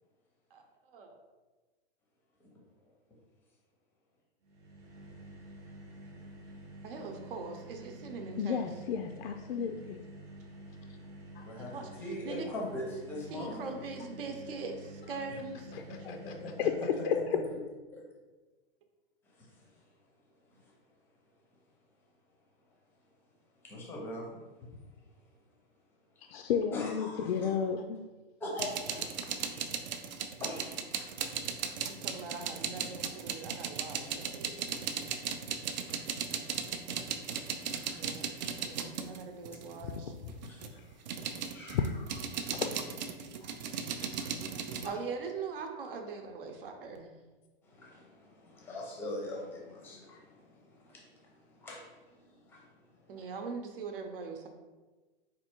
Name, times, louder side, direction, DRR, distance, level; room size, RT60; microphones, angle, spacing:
sound 1, 4.4-17.0, right 1 dB, 25° right, 0.8 m, -49 dB
voice 1, 6.8-8.7 11.7-11.9 12.2-12.5 13.3-15.7 31.9-34.5 37.9-38.3 38.6-40.1 44.8-47.1 53.1-54.5, right 4 dB, 70° right, 4 dB, 0.8 m, -41 dB
voice 2, 8.4-10.0 11.3-11.4 15.7-16.2 16.6-17.2 26.3-28.0 40.0-40.4 41.7-42.1 42.5-42.7 44.0-44.2, left 7 dB, 80° left, 5 dB, 0.5 m, -33 dB
voice 3, 11.4-13.6 15.9-16.9 17.9-18.0 19.4-19.6 23.6-24.3 26.7-27.6 28.4-29.7 30.4-31.1 35.9-36.0 37.7-38.0 40.5-40.7 41.1-41.2 41.5-41.8 42.3-42.5 43.4-43.6 44.2-44.9 47.6-52.7 53.1-53.3, left 1 dB, 5° left, -2 dB, 0.6 m, -42 dB
sound 2, 28.6-39.8 40.3-44.9, right 7 dB, 50° right, 0.4 m, -37 dB
4.4 x 2.6 x 4.4 m, 1.2 s
supercardioid pair, 170°, 29 cm